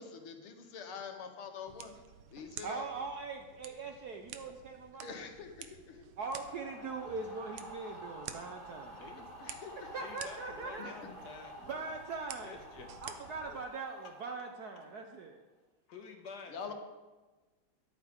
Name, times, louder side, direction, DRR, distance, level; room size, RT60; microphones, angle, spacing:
voice 1, 0.0-1.9 2.3-2.8 5.0-5.8 9.4-9.7 10.8-10.9 16.5-16.7, left 6 dB, 75° left, 5 dB, 1.9 m, -45 dB
sound 1, 1.7-13.7, right 9 dB, 85° right, 1.6 m, -51 dB
voice 2, 2.6-5.2 6.2-9.0 9.9-11.0 11.7-12.6 13.0-15.4, right 4 dB, 65° right, 4 dB, 1.0 m, -41 dB
sound 2, 6.2-15.3, equal, 45° right, 4.4 m, -51 dB
voice 3, 8.9-9.3 10.0-11.8 12.4-12.9 13.4-13.6 15.9-16.7, left 4 dB, 50° left, 3 dB, 1.6 m, -50 dB
13.0 x 10.5 x 3.6 m, 1.2 s
omnidirectional pair, 2.4 m